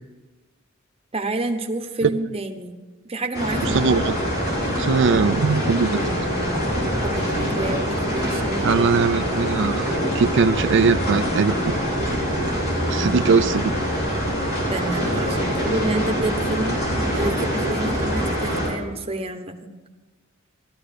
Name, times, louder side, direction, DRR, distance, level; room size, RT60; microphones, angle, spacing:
voice 1, 1.1-2.8 3.1-4.0 7.0-9.1 12.9-13.3 14.7-19.7, right 2 dB, 30° right, 5 dB, 1.0 m, -29 dB
sound 1, 3.3-18.7, equal, 50° left, 4.0 m, -24 dB
voice 2, 3.6-4.1 4.8-6.0 8.6-9.9 10.1-11.7 12.9-13.7, right 5 dB, 60° right, 9 dB, 0.4 m, -20 dB
14.5 x 13.0 x 5.2 m, 1.3 s
head